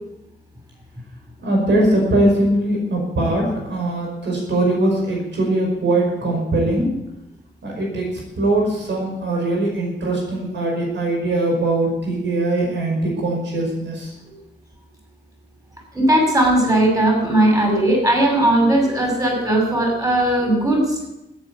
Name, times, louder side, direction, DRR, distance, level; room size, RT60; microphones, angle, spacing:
voice 1, 1.4-7.0 7.6-8.1 8.4-14.1, right 1 dB, 85° right, -1 dB, 5.2 m, -21 dB
voice 2, 15.9-20.8, right 1 dB, 20° right, 0 dB, 6.8 m, -17 dB
13.5 x 9.1 x 8.7 m, 0.92 s
cardioid pair, 80°, 18 cm